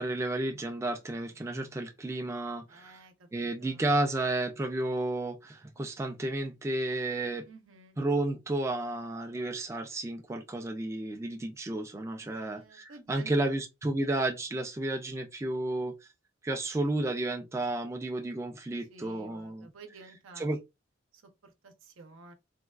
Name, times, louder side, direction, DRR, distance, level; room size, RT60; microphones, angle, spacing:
voice 1, 0.0-3.0 3.3-7.5 8.0-16.0 16.4-19.7 20.4-20.6, right 2 dB, 15° right, 0.3 m, -32 dB
voice 2, 2.7-3.8 4.1-4.4 7.5-8.0 12.1-13.6 18.9-20.5 21.1-22.3, right 3 dB, 85° right, 0.7 m, -52 dB
3.4 x 2.2 x 2.3 m
head